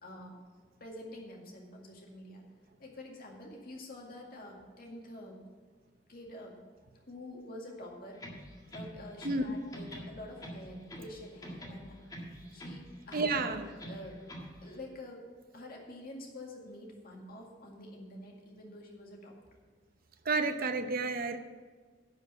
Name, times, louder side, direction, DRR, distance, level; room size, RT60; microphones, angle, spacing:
voice 1, 0.0-0.4 0.8-2.4 2.8-5.4 6.1-6.6 6.9-8.2 8.7-12.0 12.5-14.2 14.6-15.2 15.5-19.4, left 1 dB, 55° left, 0 dB, 2.1 m, -47 dB
sound 1, 8.1-9.5 9.7-11.2 11.4-12.8 13.1-14.5, equal, 20° left, 1.8 m, -44 dB
voice 2, 9.2-9.6 13.1-13.7 20.2-21.4, right 3 dB, 50° right, 7 dB, 0.8 m, -31 dB
11.0 x 5.1 x 8.3 m, 1.4 s
head